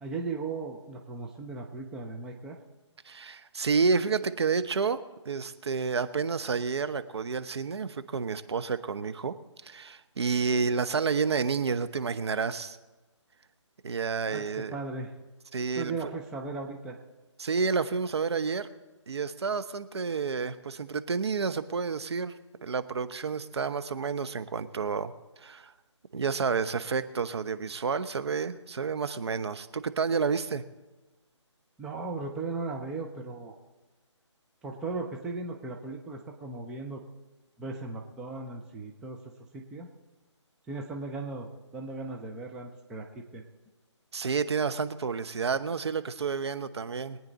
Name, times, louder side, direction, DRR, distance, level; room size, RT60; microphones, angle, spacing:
voice 1, 0.0-2.6 14.3-15.1 15.8-17.0 31.8-33.6 34.6-37.0 37.6-39.2 39.5-39.9 40.7-43.4, right 3 dB, 5° right, 0 dB, 0.5 m, -37 dB
voice 2, 3.0-9.4 9.6-12.8 13.8-14.7 15.5-15.9 17.4-18.7 19.1-22.3 22.6-25.1 25.4-25.7 26.1-30.6 44.1-47.2, right 5 dB, 60° right, 11 dB, 0.9 m, -30 dB
23.0 x 9.1 x 4.0 m, 1.2 s
figure-of-eight pair, 155°, 16 cm